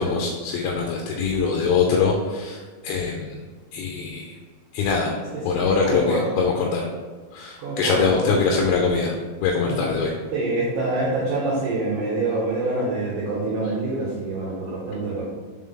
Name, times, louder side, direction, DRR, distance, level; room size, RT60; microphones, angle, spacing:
voice 1, 0.0-3.4 3.7-4.3 4.7-5.1 5.5-6.8 7.3-9.2 9.4-10.1, left 5 dB, 80° left, 0 dB, 2.7 m, -23 dB
voice 2, 5.3-6.4 7.6-8.5 9.7-9.8 10.3-15.2, right 2 dB, 70° right, -7 dB, 2.8 m, -26 dB
7.3 x 3.8 x 3.7 m, 1.4 s
omnidirectional pair, 5.6 m